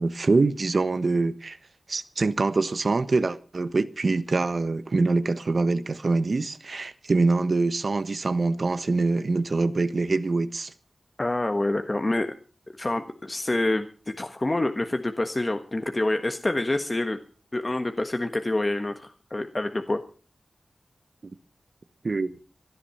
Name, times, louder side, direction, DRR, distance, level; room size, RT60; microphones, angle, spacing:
voice 1, 0.0-1.6 1.9-10.7 21.2-21.3 22.0-22.3, right 3 dB, 60° right, 1.2 m, -24 dB
voice 2, 11.2-12.3 12.8-17.2 17.5-20.0, left 2 dB, 35° left, 1.4 m, -27 dB
18.0 x 12.5 x 5.7 m
cardioid pair, 50°, 0 cm